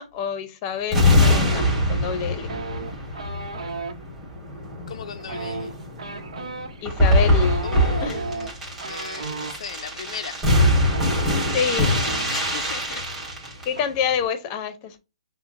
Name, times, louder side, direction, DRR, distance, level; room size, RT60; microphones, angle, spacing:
voice 1, 0.0-2.5 6.8-7.7 8.0-8.2 11.5-12.0 13.6-15.0, left 7 dB, 25° left, 0.6 m, -27 dB
sound 1, 0.9-13.8 14.1-14.2, left 1 dB, 10° right, 1.4 m, -23 dB
sound 2, 2.5-4.0 5.2-9.6 10.5-10.6 10.8-12.5 12.8-13.0 13.3-13.8, right 3 dB, 75° right, 0.9 m, -34 dB
voice 2, 4.9-5.7 7.6-8.5 8.9-10.4 12.3-13.0, left 6 dB, 70° left, 0.4 m, -36 dB
5.6 x 2.1 x 2.5 m
hypercardioid pair, 155°, 4 cm